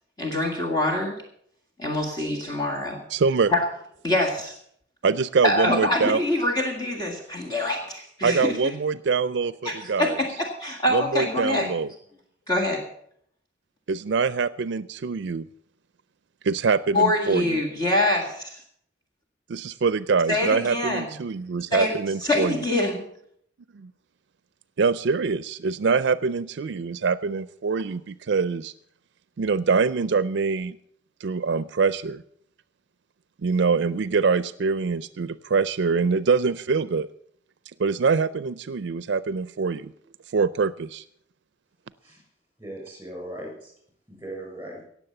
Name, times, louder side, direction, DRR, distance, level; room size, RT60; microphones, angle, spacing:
voice 1, 0.2-1.2 1.8-3.0 3.5-3.6 4.0-4.6 5.4-8.6 9.6-11.7 12.5-12.8 16.9-18.6 20.3-21.1 21.7-21.9 22.2-23.1, left 1 dB, 20° left, 0 dB, 1.9 m, -25 dB
voice 2, 3.1-3.5 5.0-6.2 8.2-10.2 10.9-11.9 13.9-15.5 16.4-17.6 19.5-22.6 23.7-23.9 24.8-28.7 29.4-30.8 31.2-32.2 33.4-37.1 37.8-39.9 40.3-41.0, right 5 dB, 70° right, 16 dB, 0.4 m, -24 dB
voice 3, 42.6-43.7 44.1-44.8, right 1 dB, 10° right, 1 dB, 6.7 m, -38 dB
18.0 x 7.2 x 6.8 m, 0.66 s
head